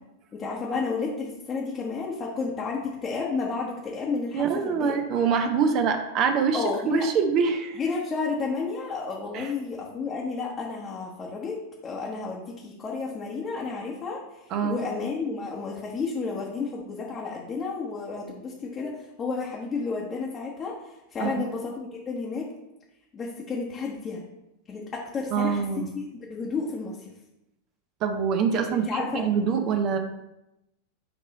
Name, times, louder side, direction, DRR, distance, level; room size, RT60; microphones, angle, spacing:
voice 1, 0.3-4.9 6.5-7.1 7.8-11.5 11.8-14.2 14.6-20.7 21.1-22.5 23.1-24.2 24.7-25.8 26.3-27.1 28.5-29.2, left 4 dB, 20° left, -4 dB, 1.0 m, -31 dB
voice 2, 4.3-7.8 9.3-9.5 14.5-14.8 21.2-21.3 25.3-25.9 28.0-30.0, right 6 dB, 40° right, 6 dB, 0.6 m, -25 dB
7.8 x 3.0 x 4.0 m, 0.90 s
figure-of-eight pair, 90°, 0 cm